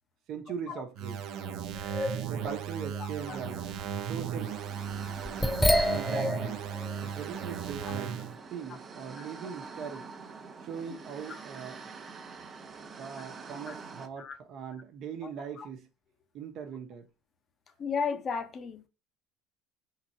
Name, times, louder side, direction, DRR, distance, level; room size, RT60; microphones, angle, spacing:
voice 1, 0.3-1.2 2.3-3.7 4.0-4.6 5.9-6.7 7.0-8.2 8.5-10.1 10.6-11.9 13.0-15.9 16.3-17.1, right 7 dB, 55° right, 1.1 m, -40 dB
sound 1, 1.0-8.4, right 8 dB, 70° right, 0.7 m, -36 dB
sound 2, 1.7-3.0 3.3-3.4 4.9-7.0 7.4-7.5, left 1 dB, 5° left, 0.4 m, -28 dB
sound 3, 2.8-14.1, right 4 dB, 30° right, 0.8 m, -46 dB
voice 2, 17.8-18.9, left 6 dB, 35° left, 0.8 m, -34 dB
4.4 x 3.8 x 2.8 m
cardioid pair, 120°, 0 cm